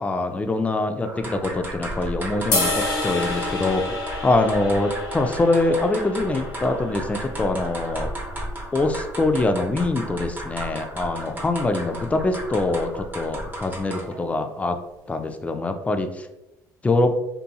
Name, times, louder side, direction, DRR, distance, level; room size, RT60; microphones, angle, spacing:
voice 1, 0.0-4.0 4.2-8.1 8.7-14.8 15.1-16.3 16.8-17.2, left 2 dB, 15° left, 7 dB, 0.3 m, -24 dB
sound 1, 1.0-14.2, right 1 dB, 20° right, 0.8 m, -34 dB
sound 2, 2.5-8.7, left 2 dB, 70° left, 1.2 m, -30 dB
2.7 x 2.5 x 2.2 m, 0.97 s
supercardioid pair, 75°, 8 cm